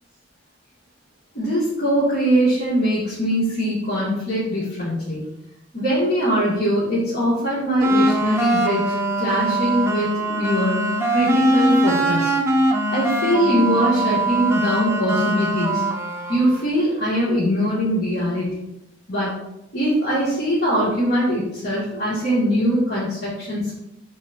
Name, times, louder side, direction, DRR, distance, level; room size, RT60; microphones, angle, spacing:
voice 1, 1.3-5.2 5.7-10.8 11.1-12.3 12.9-15.8 16.3-18.7 19.1-19.4 19.7-23.7, equal, 60° left, -9 dB, 2.5 m, -22 dB
sound 1, 7.8-16.6, right 1 dB, 15° right, 0.9 m, -21 dB
12.0 x 5.1 x 2.8 m, 0.86 s
head